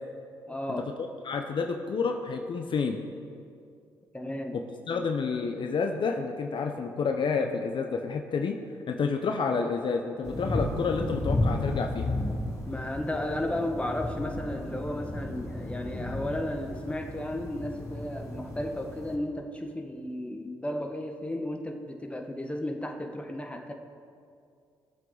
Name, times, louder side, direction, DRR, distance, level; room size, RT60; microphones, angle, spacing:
voice 1, 0.5-0.9 4.1-4.6 12.7-23.7, left 1 dB, 10° left, 3 dB, 1.6 m, -34 dB
voice 2, 1.2-3.0 4.5-4.6 4.9-8.6 8.9-12.1, left 5 dB, 55° left, 4 dB, 0.9 m, -29 dB
sound 1, 10.2-19.2, left 1 dB, 30° left, 3.5 m, -33 dB
19.0 x 7.5 x 4.0 m, 2.4 s
hypercardioid pair, 50°, 10 cm